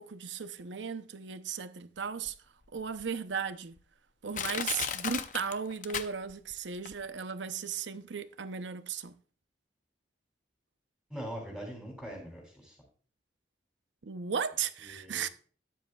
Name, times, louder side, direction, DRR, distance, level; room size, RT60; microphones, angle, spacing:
voice 1, 0.0-2.3 2.7-3.8 4.2-9.1 14.0-15.3, right 6 dB, 85° right, 0.7 m, -36 dB
Crushing, 2.3-2.4 3.0-3.1 3.8-3.9 4.3-6.5 6.9-7.0, left 8 dB, 45° left, 0.6 m, -35 dB
voice 2, 11.1-12.8 14.9-15.2, equal, 5° left, 3.1 m, -42 dB
13.0 x 9.8 x 2.3 m
head